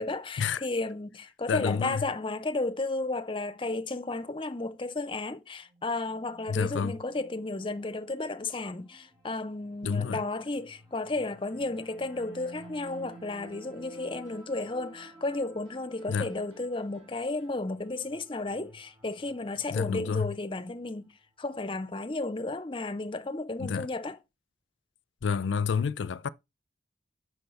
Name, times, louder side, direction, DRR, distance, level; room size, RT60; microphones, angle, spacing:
voice 1, 0.0-21.1 21.4-24.2, left 2 dB, 30° left, 0.6 m, -33 dB
voice 2, 1.5-2.0 6.5-6.9 9.8-10.2 16.1-16.3 19.7-20.3 23.6-23.9 25.2-26.3, left 6 dB, 80° left, 0.4 m, -29 dB
sound 1, 5.6-20.9, right 2 dB, 20° right, 3.0 m, -54 dB
sound 2, 12.5-17.6, right 1 dB, 40° right, 2.8 m, -62 dB
6.2 x 4.6 x 5.2 m
head